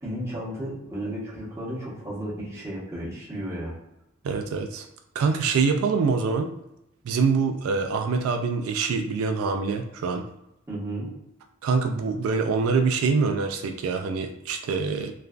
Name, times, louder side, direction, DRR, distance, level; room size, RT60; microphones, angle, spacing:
voice 1, 0.0-3.8 10.7-11.1, right 1 dB, 15° right, -8 dB, 0.9 m, -33 dB
voice 2, 4.2-4.9 5.2-6.5 7.0-10.2 11.6-15.1, right 5 dB, 85° right, 5 dB, 0.3 m, -25 dB
3.2 x 2.3 x 2.4 m, 0.85 s
head